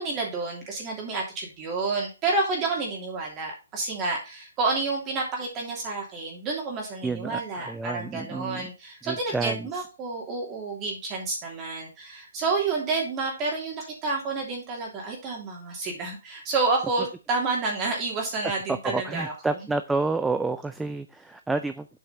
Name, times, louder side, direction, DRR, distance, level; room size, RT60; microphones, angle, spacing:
voice 1, 0.0-19.6, right 3 dB, 20° right, -1 dB, 2.7 m, -29 dB
voice 2, 7.0-8.7 9.0-9.7 18.7-21.9, right 3 dB, 5° right, 9 dB, 0.4 m, -29 dB
7.8 x 4.8 x 4.1 m, 0.30 s
hypercardioid pair, 150°, 0 cm